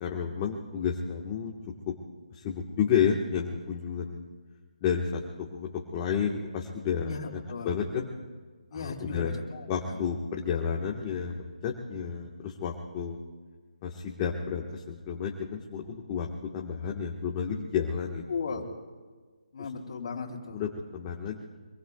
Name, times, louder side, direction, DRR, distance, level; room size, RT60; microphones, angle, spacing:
voice 1, 0.0-1.5 1.9-2.0 2.3-4.3 4.8-7.4 7.6-8.1 8.7-9.3 9.7-13.2 13.8-16.3 16.5-18.2 20.5-21.5, left 7 dB, 20° left, 0 dB, 1.4 m, -31 dB
voice 2, 7.0-7.7 8.7-10.1 18.3-18.7 19.5-20.6, left 5 dB, 45° left, 0 dB, 3.4 m, -36 dB
26.0 x 23.0 x 2.4 m, 1.5 s
hypercardioid pair, 165°, 4 cm